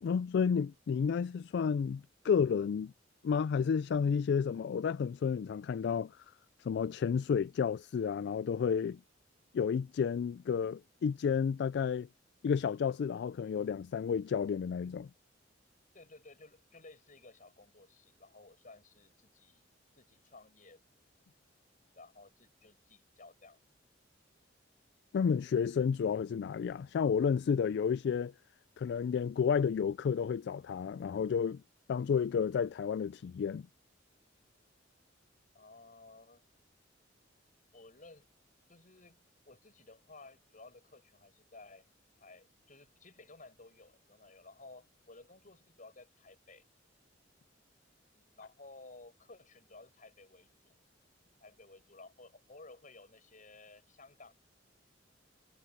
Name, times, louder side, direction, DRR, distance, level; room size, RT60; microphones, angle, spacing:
voice 1, 0.0-2.9 3.2-6.1 6.6-9.0 9.5-12.1 12.4-15.1 25.1-28.3 28.8-31.6 31.9-33.7, left 6 dB, 60° left, 0.3 m, -31 dB
voice 2, 15.9-19.7 19.9-20.8 22.0-23.6 35.5-36.4 37.7-38.3 38.7-41.9 42.2-46.6 48.1-50.8 51.4-54.3, left 3 dB, 45° left, 7.2 m, -56 dB
head